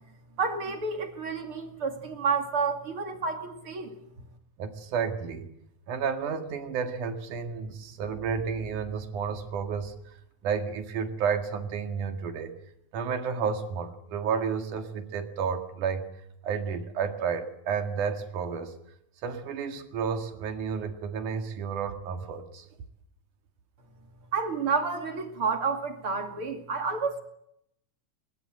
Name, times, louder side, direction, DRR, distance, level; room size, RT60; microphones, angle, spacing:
voice 1, 0.4-4.0 24.3-27.2, right 5 dB, 45° right, 5 dB, 3.2 m, -30 dB
voice 2, 4.6-5.5 5.9-9.9 10.4-12.5 12.9-16.1 16.4-18.7 19.2-22.7, right 6 dB, 85° right, 6 dB, 3.5 m, -31 dB
22.0 x 20.5 x 7.8 m, 0.75 s
omnidirectional pair, 3.5 m